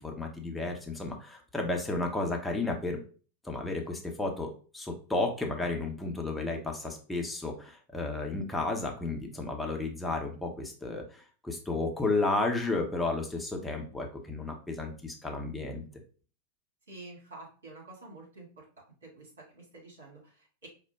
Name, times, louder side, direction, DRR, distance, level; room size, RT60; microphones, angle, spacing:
voice 1, 0.0-3.0 3.4-15.8, left 2 dB, 5° left, 1 dB, 0.7 m, -32 dB
voice 2, 16.9-18.6 19.0-20.7, right 2 dB, 65° right, -3 dB, 2.0 m, -49 dB
4.8 x 2.2 x 3.4 m, 0.39 s
figure-of-eight pair, 90°, 0 cm